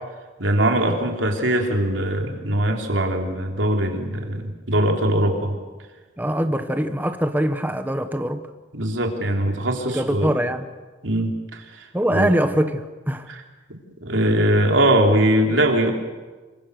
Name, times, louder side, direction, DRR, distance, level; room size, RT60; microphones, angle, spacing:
voice 1, 0.4-5.5 8.7-10.3 11.0-11.6 12.1-12.3 13.3-13.4 13.7-15.9, right 1 dB, 85° right, 2 dB, 3.4 m, -21 dB
voice 2, 6.2-8.5 9.9-10.7 11.9-13.3, equal, 10° right, 8 dB, 1.0 m, -23 dB
27.0 x 23.5 x 6.6 m, 1.3 s
head